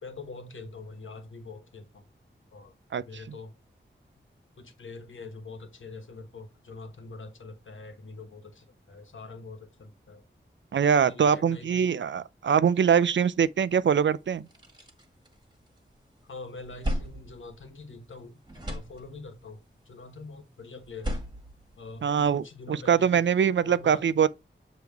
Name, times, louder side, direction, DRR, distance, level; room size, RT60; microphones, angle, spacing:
voice 1, 0.0-2.1 2.5-3.6 4.6-10.2 11.0-11.9 16.2-21.2 21.8-23.2 23.6-24.0, left 3 dB, 80° left, 1.3 m, -44 dB
voice 2, 10.7-14.5 22.0-24.3, right 7 dB, 70° right, 0.4 m, -23 dB
sound 1, 13.8-13.9 14.3-16.0 16.3-18.2 18.4-19.5 20.8-22.4, equal, 25° right, 1.7 m, -36 dB
7.0 x 3.1 x 4.6 m
wide cardioid pair, 85°, 20 cm